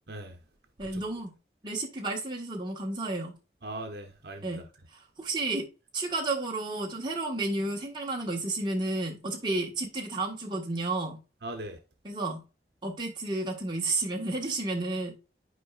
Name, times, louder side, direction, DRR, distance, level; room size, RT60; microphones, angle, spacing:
voice 1, 0.8-1.3 1.6-3.4 4.4-4.6 4.9-5.7 5.9-11.2 12.0-12.4 12.8-15.1, right 2 dB, 25° right, 1.5 m, -32 dB
voice 2, 3.6-4.6 11.4-11.8, right 1 dB, 70° right, 0.9 m, -39 dB
9.9 x 4.7 x 2.5 m
head